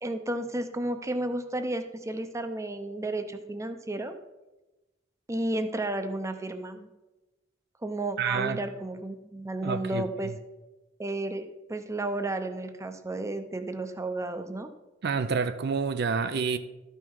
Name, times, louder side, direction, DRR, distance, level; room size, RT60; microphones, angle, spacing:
voice 1, 0.0-4.2 5.3-6.9 7.8-10.3 11.0-14.7, right 1 dB, 15° right, 0.6 m, -32 dB
voice 2, 8.2-8.6 9.6-10.3 15.0-16.6, right 5 dB, 55° right, 0.4 m, -28 dB
12.5 x 5.6 x 4.6 m
head